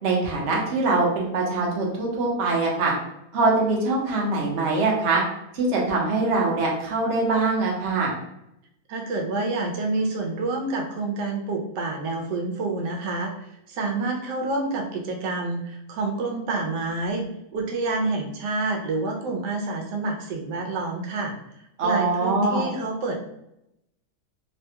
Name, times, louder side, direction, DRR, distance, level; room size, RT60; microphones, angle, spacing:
voice 1, 0.0-2.9 3.3-5.2 5.5-8.1 21.8-22.7, right 3 dB, 50° right, -2 dB, 0.9 m, -23 dB
voice 2, 8.9-21.3 21.8-23.1, right 3 dB, 80° right, 1 dB, 1.2 m, -28 dB
3.3 x 2.2 x 2.8 m, 0.82 s
omnidirectional pair, 1.8 m